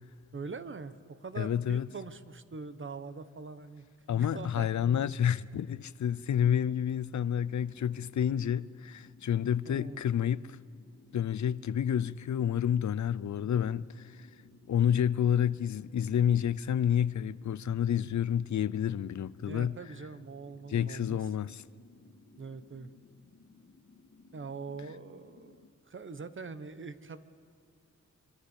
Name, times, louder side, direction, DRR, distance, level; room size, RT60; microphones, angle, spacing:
voice 1, 0.3-3.8 4.2-4.7 9.6-10.0 19.5-21.2 22.4-22.9 24.3-27.2, right 4 dB, 45° right, 1.2 m, -43 dB
voice 2, 1.4-1.9 4.1-10.6 11.1-14.3 14.7-19.7 20.7-21.6, left 9 dB, 75° left, 0.6 m, -29 dB
sound 1, 7.6-25.7, left 3 dB, 50° left, 2.1 m, -59 dB
25.0 x 24.5 x 8.3 m
wide cardioid pair, 135°, 29 cm